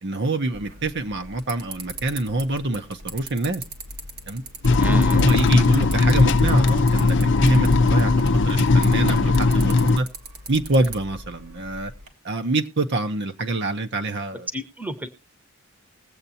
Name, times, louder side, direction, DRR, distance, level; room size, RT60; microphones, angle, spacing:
voice 1, 0.0-3.6 4.3-4.4 5.1-10.1 10.5-11.9 12.2-14.5, right 2 dB, 55° right, 0.9 m, -26 dB
sound 1, 0.5-12.1, right 3 dB, 90° right, 1.9 m, -40 dB
sound 2, 4.6-10.0, left 3 dB, 60° left, 0.6 m, -18 dB
voice 2, 4.8-5.2 14.5-15.1, right 1 dB, 10° right, 1.0 m, -30 dB
20.5 x 8.0 x 2.8 m
head